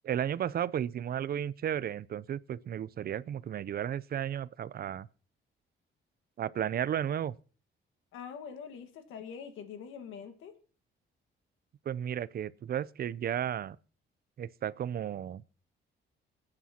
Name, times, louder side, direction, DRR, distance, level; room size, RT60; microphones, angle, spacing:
voice 1, 0.0-5.1 6.4-7.4 11.9-13.8 14.4-15.4, right 9 dB, 50° right, 0.5 m, -33 dB
voice 2, 8.1-10.5, left 7 dB, 90° left, 1.6 m, -44 dB
25.5 x 9.9 x 2.9 m
cardioid pair, 90°, 20 cm